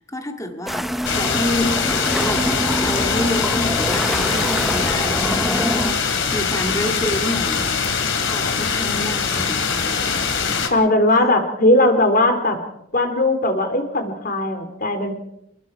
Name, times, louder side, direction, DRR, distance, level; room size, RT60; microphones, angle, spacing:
voice 1, 0.1-2.5 2.8-10.0, left 1 dB, 15° left, 4 dB, 2.0 m, -28 dB
sound 1, 0.7-5.9, equal, ahead, 0.9 m, -25 dB
sound 2, 1.0-10.7, left 5 dB, 60° left, 3.0 m, -22 dB
voice 2, 10.7-12.6 12.9-15.1, left 1 dB, 45° left, 7 dB, 3.3 m, -18 dB
28.5 x 21.0 x 4.7 m, 0.78 s
head